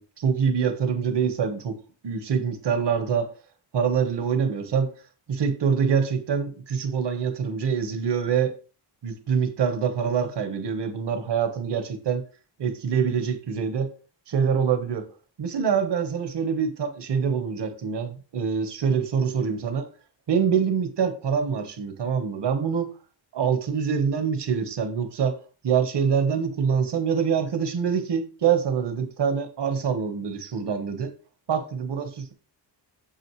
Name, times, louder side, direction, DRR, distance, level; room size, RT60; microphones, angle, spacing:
voice 1, 0.0-3.3 3.7-4.9 5.3-8.5 9.0-12.2 12.6-13.9 14.3-15.1 15.4-19.9 20.3-22.9 23.3-31.1 31.5-32.3, right 6 dB, 70° right, 1.4 m, -25 dB
8.8 x 7.4 x 3.2 m
wide cardioid pair, 170°, 43 cm